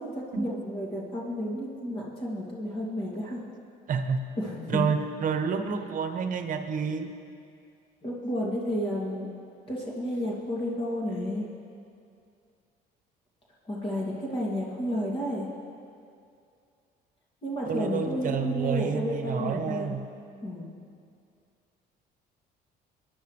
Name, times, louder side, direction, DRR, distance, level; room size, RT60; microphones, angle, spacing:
voice 1, 0.0-3.4 4.4-4.8 8.0-9.3 9.7-11.5 13.6-15.5 17.4-20.0 20.4-20.7, equal, 30° left, -5 dB, 2.5 m, -31 dB
voice 2, 3.9-4.2 4.7-7.1 17.6-20.1, right 6 dB, 50° right, 8 dB, 1.0 m, -29 dB
21.5 x 10.5 x 3.3 m, 2.4 s
cardioid pair, 110°, 17 cm